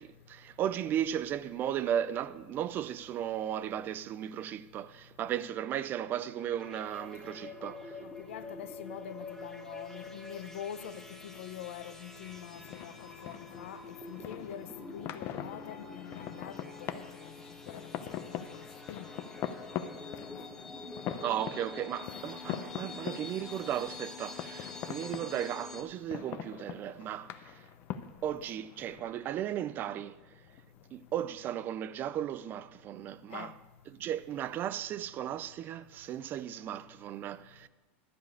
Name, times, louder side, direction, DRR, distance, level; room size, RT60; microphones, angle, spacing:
voice 1, 0.0-8.0 21.2-27.6 28.2-30.2 30.9-33.5 33.9-37.7, right 10 dB, 30° right, 0.3 m, -35 dB
sound 1, 6.4-25.8, left 3 dB, 5° left, 1.0 m, -46 dB
voice 2, 8.0-17.3 17.7-19.1 19.4-19.5 19.8-20.5 28.4-28.5 33.3-33.5, left 10 dB, 80° left, 0.7 m, -45 dB
sound 2, 12.3-31.6, left 10 dB, 40° left, 0.6 m, -43 dB
11.5 x 5.2 x 8.2 m
supercardioid pair, 145°, 7 cm